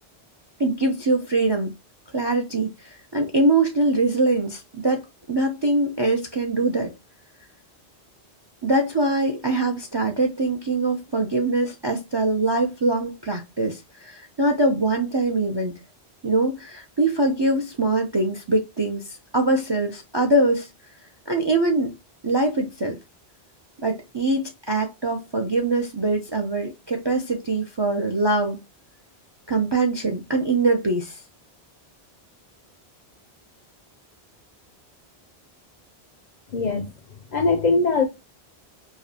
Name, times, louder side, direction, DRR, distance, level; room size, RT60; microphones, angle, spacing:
voice 1, 0.6-1.7 2.1-6.9 8.6-15.8 16.2-19.1 19.3-20.7 21.3-21.9 22.2-23.0 23.8-28.6 29.5-31.2, right 2 dB, 35° right, 0.4 m, -23 dB
voice 2, 36.5-36.9 37.3-38.1, left 3 dB, 55° left, 0.6 m, -21 dB
4.8 x 2.2 x 2.7 m
omnidirectional pair, 1.1 m